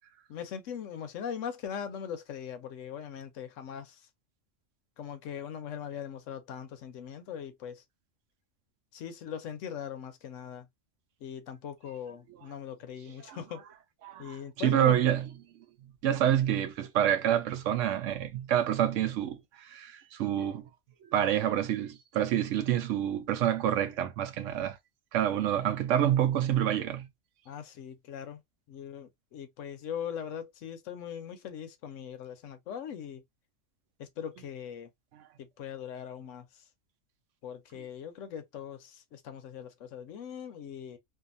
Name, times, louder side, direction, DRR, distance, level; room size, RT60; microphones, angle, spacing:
voice 1, 0.3-4.1 5.0-7.8 8.9-10.7 11.2-13.6 14.2-15.0 27.5-28.4 28.7-33.2 34.0-34.9 35.4-36.7 37.4-41.0, left 8 dB, 85° left, 1.0 m, -40 dB
voice 2, 14.0-15.3 16.0-20.7 21.1-24.8 25.1-27.1, right 10 dB, 80° right, 0.9 m, -27 dB
2.6 x 2.4 x 2.4 m
omnidirectional pair, 1.3 m